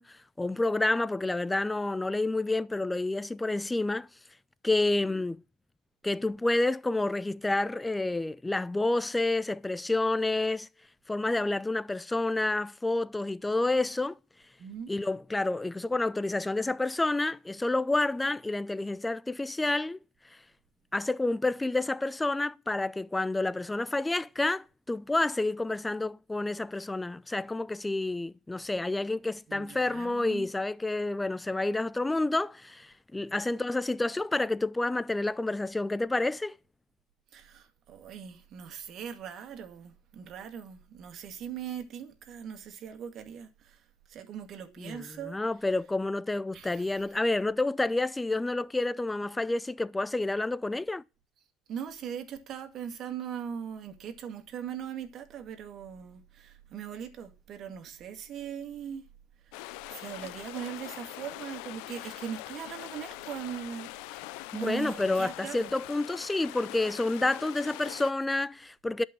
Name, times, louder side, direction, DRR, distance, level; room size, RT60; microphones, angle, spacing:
voice 1, 0.0-4.1 4.6-5.4 6.0-10.7 11.1-14.2 14.9-20.0 20.9-36.5 44.8-51.0 64.5-69.0, left 2 dB, 15° left, 0.5 m, -29 dB
voice 2, 14.6-14.9 29.5-30.5 37.3-45.4 46.5-47.0 51.7-59.1 59.4-59.6 59.9-64.2 64.5-65.7, right 8 dB, 55° right, 2.1 m, -40 dB
sound 1, 59.5-68.1, left 17 dB, 70° left, 0.6 m, -43 dB
11.5 x 5.4 x 7.4 m
hypercardioid pair, 70°, 0 cm